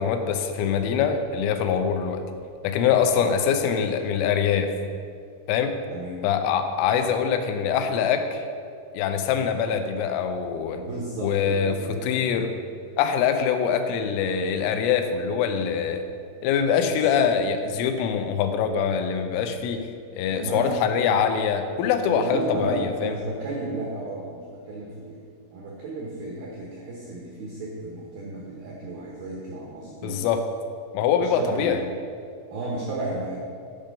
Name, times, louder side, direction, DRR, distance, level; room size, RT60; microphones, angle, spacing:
voice 1, 0.0-2.2 2.6-4.7 5.5-5.7 6.2-8.4 8.9-10.8 11.2-12.5 13.0-16.0 16.4-19.9 20.1-23.1 30.0-30.4 30.9-31.8, left 7 dB, 90° left, 7 dB, 3.2 m, -24 dB
voice 2, 5.9-6.2 10.7-12.2 16.8-17.1 20.3-20.8 22.1-25.2 25.5-30.2 31.1-31.8 32.5-33.4, right 2 dB, 80° right, -3 dB, 2.1 m, -33 dB
10.5 x 5.4 x 5.1 m, 2.3 s
omnidirectional pair, 5.7 m